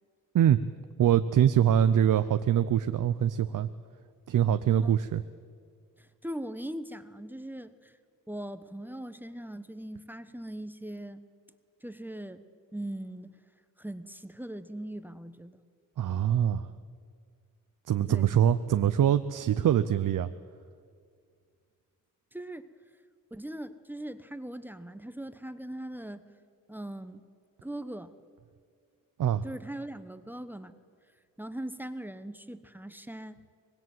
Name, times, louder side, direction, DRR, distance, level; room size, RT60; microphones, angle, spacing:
voice 1, 1.0-3.7 4.3-5.2 16.0-16.7 17.9-20.3 29.2-29.4, right 10 dB, 70° right, 11 dB, 0.7 m, -24 dB
voice 2, 6.0-8.0 8.3-11.2 11.8-12.4 12.7-13.3 13.8-15.6 18.1-18.3 22.3-22.7 23.3-26.2 26.7-27.2 27.6-28.1 29.4-30.7 31.4-33.4, right 1 dB, 5° right, 11 dB, 1.0 m, -40 dB
25.0 x 20.0 x 7.8 m, 2.2 s
cardioid pair, 90°, 33 cm